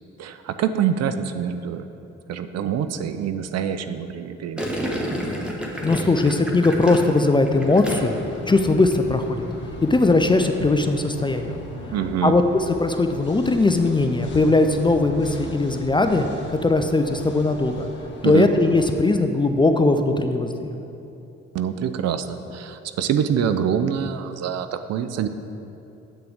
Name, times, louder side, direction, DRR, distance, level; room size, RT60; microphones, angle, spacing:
voice 1, 0.2-1.9 2.3-4.9 11.9-12.4 18.2-18.5 21.5-25.3, right 8 dB, 50° right, 10 dB, 0.5 m, -25 dB
Gurgling, 4.6-8.4 8.6-9.0, equal, 5° right, 1.2 m, -30 dB
voice 2, 5.8-9.5 9.8-11.6 12.2-17.9 18.2-20.7, left 2 dB, 15° left, 6 dB, 0.4 m, -20 dB
sound 1, 7.5-19.0, left 1 dB, 30° left, 1.6 m, -39 dB
7.8 x 6.7 x 3.6 m, 2.8 s
hypercardioid pair, 45°, 35 cm